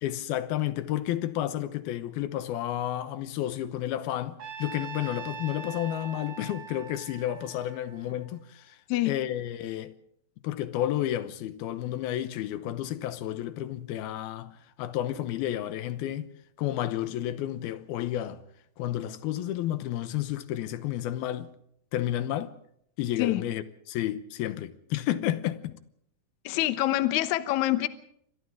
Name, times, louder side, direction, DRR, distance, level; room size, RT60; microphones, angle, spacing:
voice 1, 0.0-8.8 9.1-9.9 10.4-16.3 16.6-18.4 18.8-21.5 21.9-22.6 23.0-25.8, left 12 dB, 85° left, 2.8 m, -31 dB
Trumpet, 4.4-8.6, right 5 dB, 50° right, 2.8 m, -42 dB
voice 2, 26.4-27.9, left 15 dB, 65° left, 2.0 m, -25 dB
28.5 x 24.5 x 3.7 m
omnidirectional pair, 4.4 m